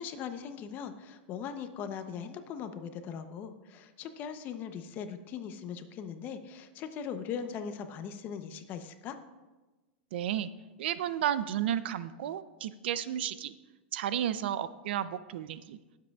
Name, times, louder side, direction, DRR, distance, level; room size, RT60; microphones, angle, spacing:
voice 1, 0.0-9.2, left 7 dB, 30° left, 9 dB, 0.7 m, -40 dB
voice 2, 10.1-10.5 10.8-13.5 13.9-15.8, right 10 dB, 75° right, 15 dB, 0.5 m, -32 dB
19.0 x 7.5 x 2.3 m, 1.2 s
supercardioid pair, 150°, 6 cm